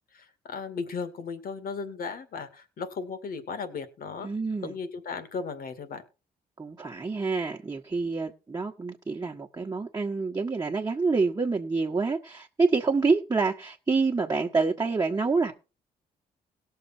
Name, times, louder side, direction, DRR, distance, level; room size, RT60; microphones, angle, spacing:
voice 1, 0.1-4.3 4.6-6.0, left 5 dB, 65° left, 2.3 m, -36 dB
voice 2, 4.2-4.7 6.6-15.5, right 4 dB, 20° right, 1.4 m, -27 dB
17.5 x 6.8 x 4.4 m
cardioid pair, 80°, 16 cm